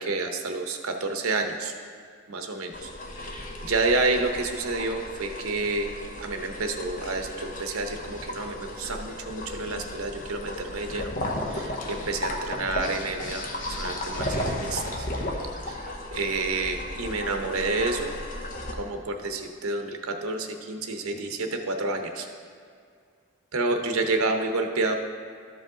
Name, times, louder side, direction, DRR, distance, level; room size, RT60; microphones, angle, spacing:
voice 1, 0.0-1.7 2.3-5.9 6.2-11.1 11.5-15.1 15.6-15.8 16.1-18.2 18.7-22.3 23.5-24.9, right 3 dB, 90° right, 5 dB, 0.8 m, -29 dB
sound 1, 2.7-18.7, left 1 dB, 40° left, 0.8 m, -34 dB
13.0 x 5.0 x 3.8 m, 2.2 s
head